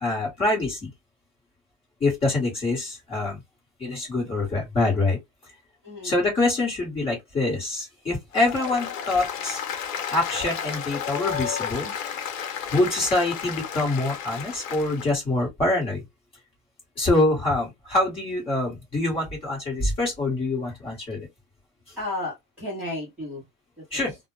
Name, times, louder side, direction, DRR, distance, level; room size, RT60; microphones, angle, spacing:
voice 1, 0.0-0.9 2.0-3.4 3.8-5.2 6.0-9.6 10.1-11.9 12.7-16.0 17.0-21.3 23.9-24.1, left 2 dB, 15° left, 1.0 m, -25 dB
voice 2, 5.8-6.2 22.0-23.5 23.8-24.2, left 1 dB, 5° right, 0.7 m, -33 dB
Applause, 8.3-15.1, left 8 dB, 70° left, 0.9 m, -32 dB
2.1 x 2.1 x 3.0 m
supercardioid pair, 170°, 42 cm